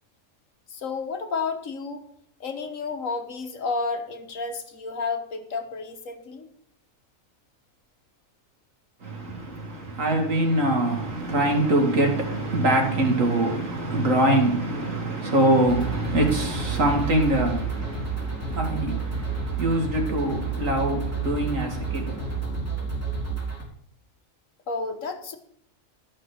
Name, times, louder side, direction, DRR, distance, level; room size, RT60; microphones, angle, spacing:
voice 1, 0.7-2.1 2.4-6.5 24.7-25.4, left 4 dB, 85° left, 1.7 m, -31 dB
voice 2, 9.0-22.7, right 1 dB, 85° right, 2.6 m, -24 dB
sound 1, 15.6-23.6, right 4 dB, 10° left, 3.5 m, -30 dB
13.0 x 5.9 x 6.4 m
omnidirectional pair, 1.3 m